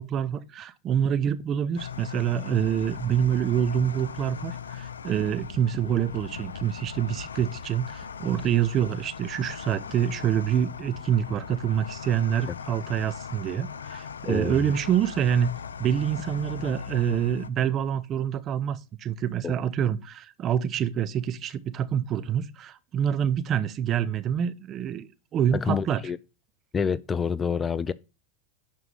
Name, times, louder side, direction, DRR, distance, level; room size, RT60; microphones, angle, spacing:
voice 1, 0.0-26.0, right 9 dB, 35° right, 0.9 m, -26 dB
sound 1, 1.8-17.5, left 7 dB, 85° left, 0.6 m, -39 dB
voice 2, 14.3-14.6 19.4-19.5 25.5-26.2 26.7-27.9, left 6 dB, 20° left, 0.5 m, -27 dB
11.0 x 4.7 x 5.5 m
hypercardioid pair, 90°, 0 cm